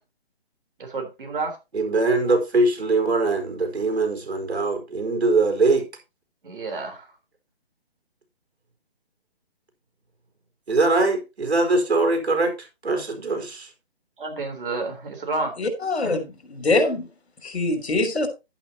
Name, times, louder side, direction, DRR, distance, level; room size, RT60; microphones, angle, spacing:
voice 1, 0.8-1.6 6.4-7.1 14.2-15.5 16.0-16.2, right 3 dB, 55° right, 3.9 m, -30 dB
voice 2, 1.7-5.9 10.7-13.7, right 3 dB, 85° right, 4.5 m, -22 dB
voice 3, 15.6-17.1 17.4-18.3, left 2 dB, 85° left, 3.4 m, -24 dB
11.5 x 9.1 x 2.9 m
hypercardioid pair, 175°, 31 cm